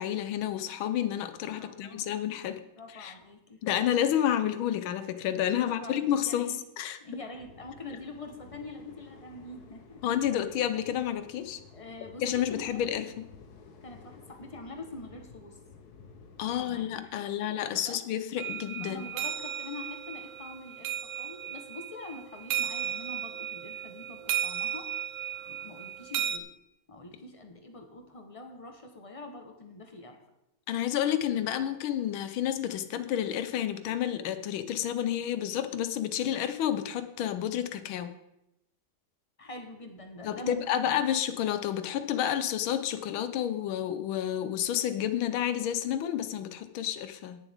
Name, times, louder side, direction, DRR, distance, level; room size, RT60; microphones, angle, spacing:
voice 1, 0.0-2.6 2.9-3.1 3.6-7.0 10.0-11.6 12.2-13.3 16.4-19.1 30.7-38.1 40.2-47.4, left 10 dB, 85° left, 11 dB, 1.6 m, -30 dB
voice 2, 1.6-2.1 2.8-3.6 5.5-6.6 7.0-10.0 11.7-12.8 13.8-15.6 16.4-18.0 18.8-24.9 25.5-26.5 26.9-30.2 39.4-41.0, left 2 dB, 25° left, 4 dB, 0.9 m, -45 dB
sound 1, 7.3-17.0, left 4 dB, 55° left, 1.4 m, -53 dB
sound 2, 18.4-26.4, right 10 dB, 75° right, 1.4 m, -35 dB
19.0 x 7.1 x 3.6 m, 0.86 s
omnidirectional pair, 2.2 m